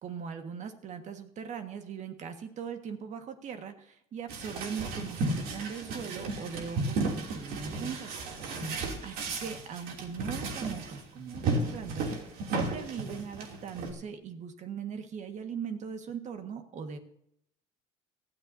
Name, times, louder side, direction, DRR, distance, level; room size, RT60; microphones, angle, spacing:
voice 1, 0.0-8.2 9.0-17.0, right 7 dB, 45° right, 6 dB, 1.7 m, -40 dB
sound 1, 4.3-11.0 11.3-13.9, right 2 dB, 65° right, 3.0 m, -34 dB
18.0 x 13.0 x 2.8 m, 0.73 s
supercardioid pair, 85°, 16 cm